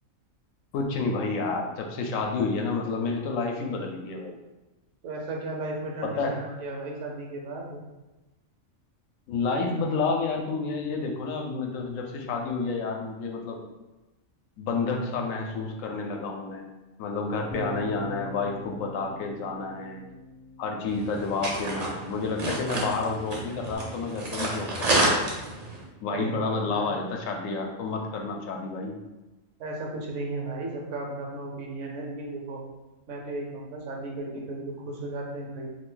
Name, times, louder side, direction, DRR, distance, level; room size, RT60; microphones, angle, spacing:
voice 1, 0.7-4.4 6.0-6.4 9.3-13.6 14.6-16.6 17.0-20.0 20.6-25.0 26.0-29.0, left 4 dB, 80° left, 2 dB, 1.0 m, -30 dB
voice 2, 5.0-7.8 26.1-26.9 29.6-32.6 33.1-35.7, right 2 dB, 70° right, 0 dB, 1.0 m, -35 dB
Bass guitar, 17.5-23.8, equal, 55° left, 0.5 m, -42 dB
sound 1, 20.9-25.8, right 1 dB, 45° right, 0.5 m, -29 dB
2.6 x 2.5 x 3.7 m, 1.1 s
omnidirectional pair, 1.4 m